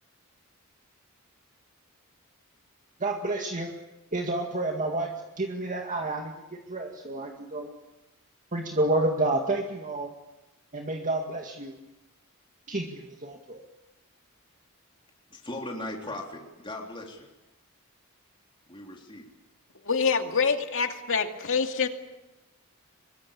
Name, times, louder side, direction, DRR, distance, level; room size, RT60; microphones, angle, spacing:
voice 1, 3.0-3.7 4.1-7.7 8.5-10.1 10.7-11.8 12.7-13.6, right 2 dB, 35° right, 2 dB, 2.1 m, -30 dB
voice 2, 15.3-17.3 18.7-19.2, left 1 dB, 25° left, 0 dB, 3.6 m, -38 dB
voice 3, 19.9-21.9, left 5 dB, 65° left, 5 dB, 2.4 m, -26 dB
25.5 x 22.5 x 8.6 m, 1.0 s
head